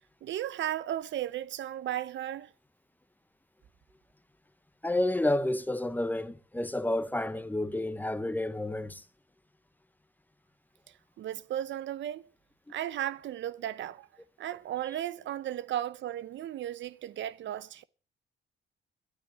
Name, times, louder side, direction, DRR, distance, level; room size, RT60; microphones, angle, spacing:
voice 1, 0.2-2.5 11.2-12.3 12.7-14.1 14.4-17.8, right 11 dB, 70° right, 0.7 m, -35 dB
voice 2, 4.8-9.0, left 1 dB, 10° left, 1.0 m, -30 dB
13.5 x 12.5 x 6.6 m
cardioid pair, 90°, 20 cm